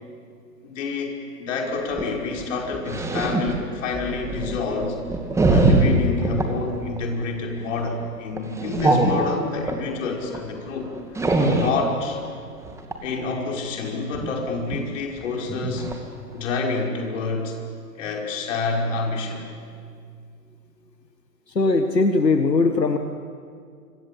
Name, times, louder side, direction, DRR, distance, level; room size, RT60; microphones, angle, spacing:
voice 1, 0.6-5.0 5.5-10.9 11.4-12.2 13.0-15.9 16.3-17.6 18.0-19.5, left 4 dB, 50° left, 1 dB, 5.8 m, -28 dB
sound 1, 1.8-6.5 7.0-7.2 7.6-7.9 8.4-9.8 10.3-10.4 10.7-11.8 12.6-13.0 14.1-14.3 14.7-14.8 15.2-15.3 15.5-16.0 16.4-16.5, right 2 dB, 5° right, 2.4 m, -23 dB
voice 2, 21.5-23.0, left 3 dB, 85° left, 7 dB, 1.7 m, -19 dB
26.0 x 26.0 x 8.8 m, 2.2 s
figure-of-eight pair, 120°, 48 cm